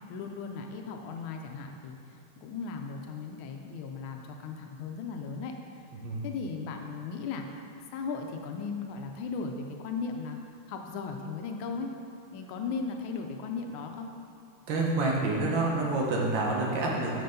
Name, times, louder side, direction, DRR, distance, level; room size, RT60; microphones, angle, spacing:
voice 1, 0.1-5.5 6.2-11.9 12.3-14.1, left 5 dB, 85° left, 3 dB, 1.4 m, -37 dB
voice 2, 14.7-17.2, right 2 dB, 70° right, -2 dB, 1.7 m, -28 dB
7.8 x 5.4 x 3.8 m, 2.8 s
omnidirectional pair, 2.2 m